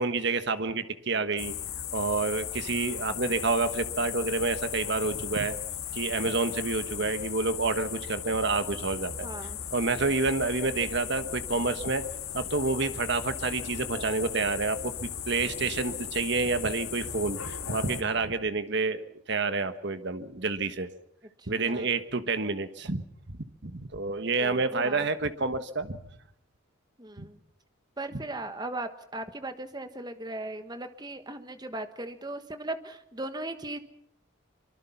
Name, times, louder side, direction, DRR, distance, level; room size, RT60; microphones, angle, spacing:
voice 1, 0.0-1.5 1.9-5.6 5.9-9.3 9.7-12.0 12.3-20.9 21.5-23.0 23.3-26.0 27.2-27.3, right 3 dB, 55° right, 10 dB, 1.4 m, -29 dB
sound 1, 1.4-18.0, left 9 dB, 85° left, 2.3 m, -37 dB
voice 2, 9.2-9.6 21.4-21.9 24.4-25.1 27.0-27.4 28.0-33.8, right 2 dB, 20° right, 9 dB, 1.3 m, -38 dB
24.5 x 24.0 x 5.9 m, 0.75 s
head